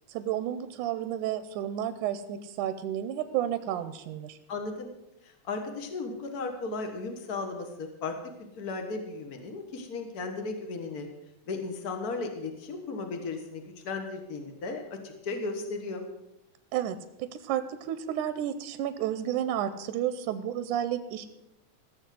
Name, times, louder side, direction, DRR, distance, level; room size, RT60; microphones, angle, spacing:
voice 1, 0.1-4.4 16.7-21.3, right 11 dB, 75° right, 11 dB, 2.0 m, -31 dB
voice 2, 4.5-4.9 5.2-8.1 8.6-11.1 11.5-16.0, left 3 dB, 65° left, 4 dB, 0.9 m, -35 dB
15.5 x 7.1 x 7.6 m, 0.88 s
omnidirectional pair, 3.8 m